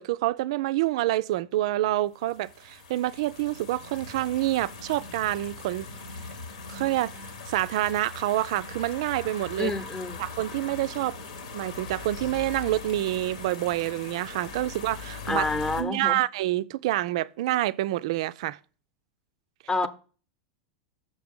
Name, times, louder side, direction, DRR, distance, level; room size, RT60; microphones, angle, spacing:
voice 1, 0.0-5.9 6.7-9.7 10.2-11.2 11.5-15.5 15.8-18.6, right 15 dB, 60° right, 0.3 m, -27 dB
sound 1, 2.2-15.8, left 4 dB, 70° left, 1.3 m, -41 dB
voice 2, 9.6-10.3 15.3-16.2 19.7-19.9, left 3 dB, 15° left, 0.8 m, -28 dB
6.7 x 6.2 x 3.6 m
figure-of-eight pair, 85°, 4 cm